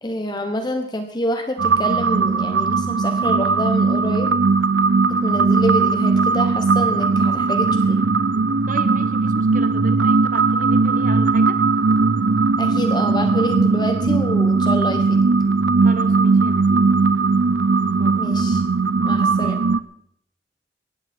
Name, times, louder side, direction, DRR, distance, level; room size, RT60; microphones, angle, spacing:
voice 1, 0.0-4.3 5.1-8.0 12.6-15.2 18.2-18.6 19.0-19.6, equal, 25° left, 6 dB, 1.3 m, -27 dB
sound 1, 1.6-19.8, right 4 dB, 85° right, 0.7 m, -18 dB
voice 2, 8.7-11.6 15.8-16.9 17.9-18.2 19.4-20.0, right 2 dB, 45° right, 9 dB, 1.3 m, -34 dB
18.0 x 14.5 x 4.6 m, 0.68 s
head